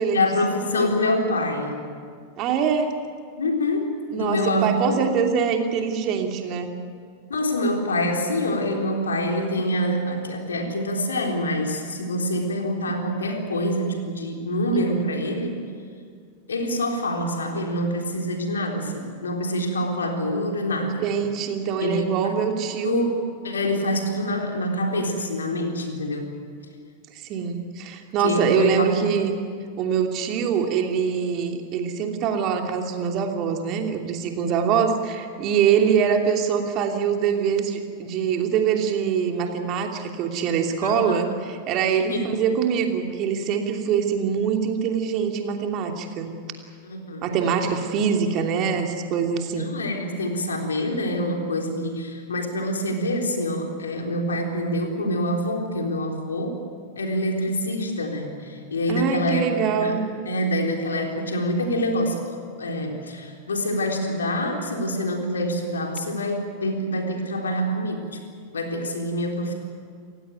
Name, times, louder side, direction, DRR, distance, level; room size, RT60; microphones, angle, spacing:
voice 1, 0.1-1.8 3.4-5.1 7.3-15.6 16.5-21.0 21.8-22.1 22.4-22.5 22.8-26.4 28.2-28.9 40.8-41.4 42.1-42.3 46.8-47.2 49.6-56.6 57.0-59.5 59.7-68.2 68.5-69.5, left 1 dB, 70° left, 2 dB, 3.8 m, -26 dB
voice 2, 2.4-3.0 4.1-6.7 14.9-15.2 21.0-23.0 27.1-29.3 29.8-46.3 47.2-49.7 58.9-60.0, right 7 dB, 40° right, 3 dB, 3.0 m, -24 dB
28.5 x 16.0 x 9.3 m, 2.1 s
figure-of-eight pair, 90°, 0 cm